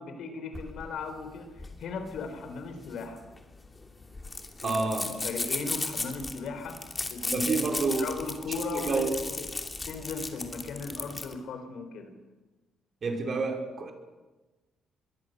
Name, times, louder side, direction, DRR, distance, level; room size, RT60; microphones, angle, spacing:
voice 1, 0.0-3.3 4.6-9.1 9.4-9.5 9.9-12.1, left 4 dB, 75° left, 8 dB, 4.0 m, -37 dB
sound 1, 0.5-11.4, left 3 dB, 20° left, 2.8 m, -36 dB
voice 2, 4.6-5.1 7.3-8.1 8.7-9.1 13.0-13.9, right 4 dB, 45° right, 3 dB, 5.1 m, -29 dB
26.0 x 22.0 x 6.7 m, 1.2 s
cardioid pair, 90°, 0 cm